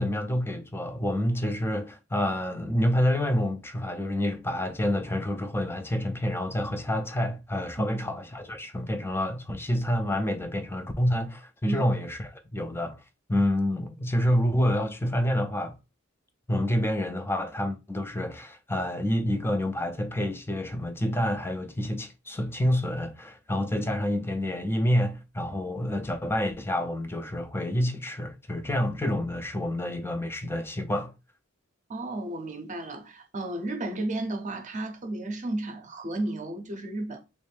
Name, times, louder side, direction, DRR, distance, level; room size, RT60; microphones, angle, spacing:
voice 1, 0.0-13.0 13.3-15.8 16.5-31.1, left 1 dB, 10° left, 0.4 m, -28 dB
voice 2, 7.8-8.1 11.6-11.9 31.9-37.2, right 2 dB, 35° right, 0.6 m, -33 dB
3.1 x 2.6 x 3.2 m
head